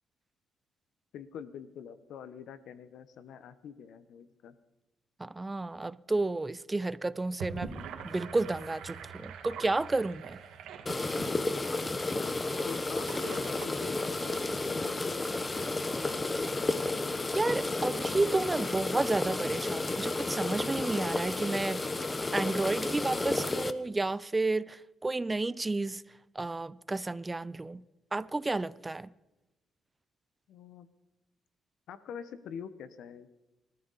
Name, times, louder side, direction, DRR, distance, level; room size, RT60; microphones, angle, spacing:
voice 1, 1.1-4.5 12.1-15.8 30.5-30.9 31.9-33.3, left 7 dB, 80° left, 1.1 m, -46 dB
voice 2, 5.2-7.8 8.0-10.4 17.3-21.8 22.3-26.0 26.4-27.9 28.1-29.1, right 2 dB, 20° right, 0.4 m, -31 dB
Gurgling / Sink (filling or washing), 7.2-14.7, right 6 dB, 80° right, 2.0 m, -44 dB
sound 1, 10.9-23.7, left 2 dB, 20° left, 0.9 m, -32 dB
24.5 x 13.5 x 4.2 m
cardioid pair, 90°, 0 cm